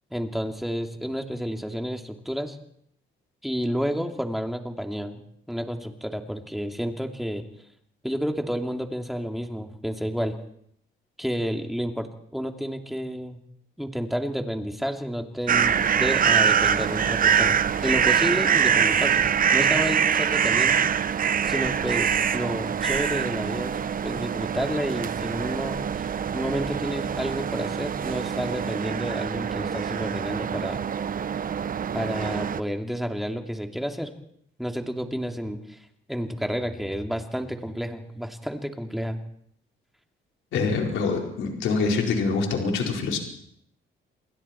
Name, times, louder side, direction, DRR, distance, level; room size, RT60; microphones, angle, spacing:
voice 1, 0.1-2.6 3.4-5.2 5.5-7.4 8.0-10.4 11.2-12.1 12.3-13.4 13.8-17.6 17.8-20.9 21.5-26.1 26.3-30.8 31.9-34.1 34.6-35.8 36.1-39.2, equal, ahead, 4 dB, 2.8 m, -30 dB
sound 1, 15.5-32.6, right 7 dB, 45° right, 0.9 m, -24 dB
voice 2, 40.5-43.2, left 4 dB, 80° left, 1 dB, 4.7 m, -25 dB
29.0 x 21.0 x 4.5 m, 0.68 s
cardioid pair, 90°, 20 cm